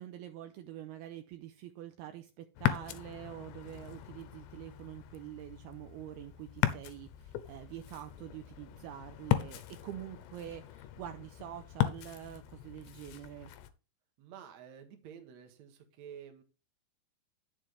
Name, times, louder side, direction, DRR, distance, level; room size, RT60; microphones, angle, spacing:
voice 1, 0.0-13.5, right 12 dB, 85° right, 7 dB, 2.3 m, -46 dB
Ocean, 2.6-13.7, left 13 dB, 80° left, 2.9 m, -37 dB
voice 2, 14.2-16.4, right 8 dB, 60° right, 5 dB, 2.1 m, -50 dB
11.0 x 7.4 x 3.4 m, 0.33 s
omnidirectional pair, 5.1 m